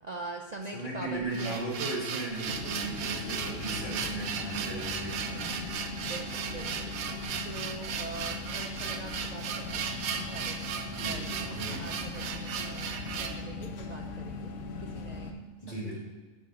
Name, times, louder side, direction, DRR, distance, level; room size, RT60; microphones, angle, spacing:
voice 1, 0.0-1.6 6.0-6.9 7.4-9.9 10.1-10.7 11.0-12.9 13.2-14.5 14.8-15.4 15.7-15.8, right 3 dB, 70° right, 2 dB, 0.4 m, -43 dB
voice 2, 0.7-5.7 11.0-11.8 15.6-16.0, right 2 dB, 35° left, -7 dB, 2.7 m, -37 dB
sound 1, 1.1-13.4, right 7 dB, 85° right, 1.1 m, -36 dB
sound 2, 2.5-15.3, left 3 dB, 60° left, 0.9 m, -39 dB
12.5 x 4.7 x 4.1 m, 1.3 s
omnidirectional pair, 1.4 m